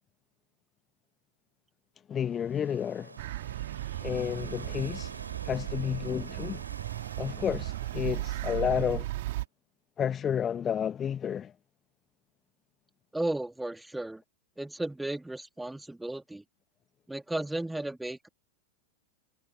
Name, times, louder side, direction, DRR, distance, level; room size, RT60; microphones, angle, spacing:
voice 1, 2.1-3.2 4.0-5.1 5.4-6.6 7.2-9.1 10.0-11.5, left 8 dB, 25° left, 0.9 m, -31 dB
sound 1, 2.2-9.3, right 3 dB, 80° right, 6.6 m, -48 dB
sound 2, 3.2-9.4, right 17 dB, 55° right, 1.6 m, -36 dB
voice 2, 13.1-14.2 14.6-16.4 17.1-18.3, right 1 dB, 5° right, 2.6 m, -34 dB
figure-of-eight pair, 90°, 0 cm